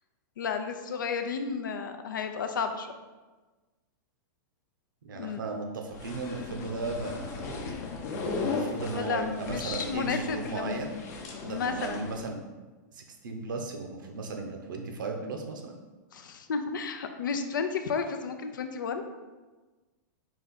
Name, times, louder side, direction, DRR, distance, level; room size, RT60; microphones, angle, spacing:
voice 1, 0.4-2.9 5.1-5.4 8.9-12.1 16.1-19.1, left 5 dB, 90° left, 7 dB, 0.5 m, -32 dB
voice 2, 5.0-7.6 8.4-10.9 11.4-12.4 12.9-15.8, right 3 dB, 85° right, 3 dB, 0.7 m, -36 dB
sound 1, 5.9-12.2, left 4 dB, 55° left, 0.7 m, -37 dB
4.1 x 2.5 x 4.0 m, 1.2 s
hypercardioid pair, 130°, 10 cm